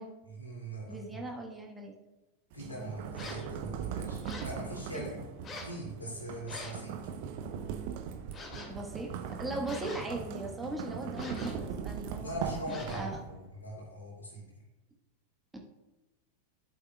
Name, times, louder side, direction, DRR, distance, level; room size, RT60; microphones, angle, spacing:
voice 1, 0.3-1.2 2.5-5.2 5.6-7.0 12.2-14.4, right 1 dB, 80° left, -2 dB, 2.7 m, -41 dB
voice 2, 0.9-1.9 4.9-5.1 8.7-12.3 12.7-13.2 15.5-15.6, right 1 dB, 10° right, 0 dB, 1.4 m, -39 dB
sound 1, 2.5-13.5, right 7 dB, 50° right, 0.8 m, -40 dB
sound 2, 3.1-3.5 4.2-4.6 5.4-5.8 6.5-6.9 8.3-8.8 9.6-10.3 11.1-11.7 12.7-13.2, left 2 dB, 25° left, 2.3 m, -45 dB
11.5 x 8.1 x 2.4 m, 1.1 s
figure-of-eight pair, 90°, 0 cm